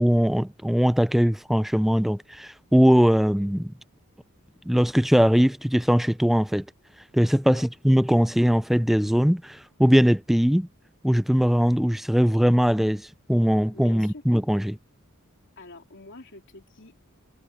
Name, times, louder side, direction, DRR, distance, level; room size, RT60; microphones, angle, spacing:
voice 1, 0.0-3.7 4.7-6.6 7.1-10.7 11.0-14.8, equal, ahead, 0.3 m, -21 dB
voice 2, 13.7-14.2 15.6-17.0, left 2 dB, 60° left, 3.6 m, -46 dB
head